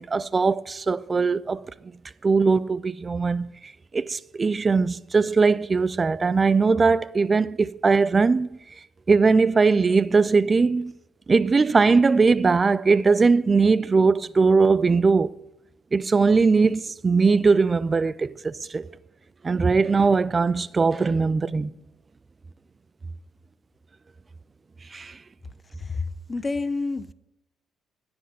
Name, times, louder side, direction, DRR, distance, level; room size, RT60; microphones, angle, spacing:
voice 1, 0.0-1.7 2.2-8.6 9.1-10.9 11.3-15.3 15.9-18.9 19.4-21.7 24.9-25.2, right 4 dB, 30° right, 0.3 m, -20 dB
voice 2, 25.8-27.1, left 3 dB, 25° left, 0.6 m, -29 dB
10.0 x 5.2 x 8.0 m
cardioid pair, 80°, 0 cm